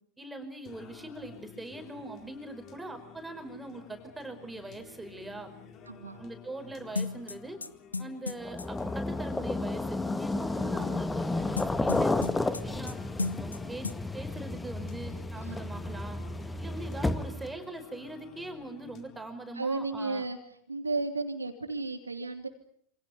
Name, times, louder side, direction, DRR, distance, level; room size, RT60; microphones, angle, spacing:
voice 1, 0.2-5.6 6.2-7.6 8.0-13.0 13.4-13.9 14.1-16.2 16.6-20.2, right 2 dB, 5° right, 6 dB, 5.2 m, -42 dB
Singing, 0.6-19.6, left 7 dB, 30° left, 4.4 m, -52 dB
voice 2, 5.8-6.2 15.4-15.6 19.5-20.4 20.7-22.5, right 3 dB, 80° right, 6 dB, 3.1 m, -33 dB
sound 1, 7.0-8.7 11.6-12.9 13.2-13.6 13.8-14.0, left 4 dB, 80° left, 1.2 m, -34 dB
sound 2, 8.4-17.5, left 2 dB, 10° left, 1.5 m, -32 dB
28.0 x 27.0 x 6.7 m, 0.70 s
figure-of-eight pair, 90°, 0 cm